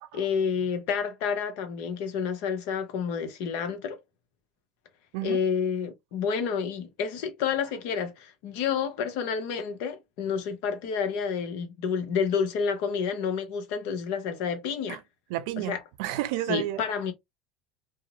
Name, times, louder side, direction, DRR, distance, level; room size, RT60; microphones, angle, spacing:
voice 1, 0.1-4.0 5.2-15.0 15.7-15.8 16.5-17.1, left 6 dB, 65° left, 0.7 m, -29 dB
voice 2, 15.3-16.9, right 15 dB, 70° right, 0.4 m, -32 dB
2.8 x 2.0 x 2.6 m
hypercardioid pair, 75°, 2 cm